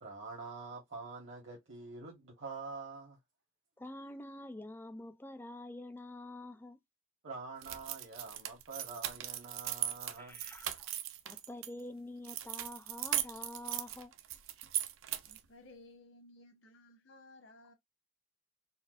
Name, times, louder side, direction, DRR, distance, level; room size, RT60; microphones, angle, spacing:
voice 1, 0.0-3.2 7.2-10.4, right 4 dB, 65° right, 1.1 m, -46 dB
voice 2, 3.8-6.8 10.2-10.9 11.2-14.1, left 1 dB, 10° left, 0.4 m, -47 dB
sound 1, 7.6-11.7 12.2-15.5, right 12 dB, 85° right, 0.4 m, -38 dB
voice 3, 15.3-17.7, left 2 dB, 75° left, 1.0 m, -57 dB
4.2 x 2.0 x 2.4 m
head